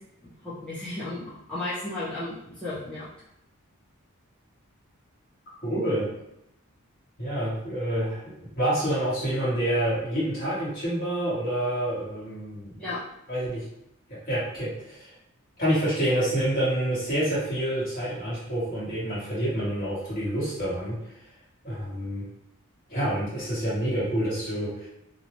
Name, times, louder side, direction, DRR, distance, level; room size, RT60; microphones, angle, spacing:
voice 1, 0.4-3.1 12.8-13.0, left 2 dB, 5° left, -12 dB, 0.5 m, -34 dB
voice 2, 5.6-6.1 7.2-12.8 13.3-13.6 14.3-15.1 15.6-21.0 21.6-22.2 22.9-24.9, right 1 dB, 40° left, -8 dB, 1.3 m, -27 dB
2.6 x 2.0 x 3.0 m, 0.81 s
head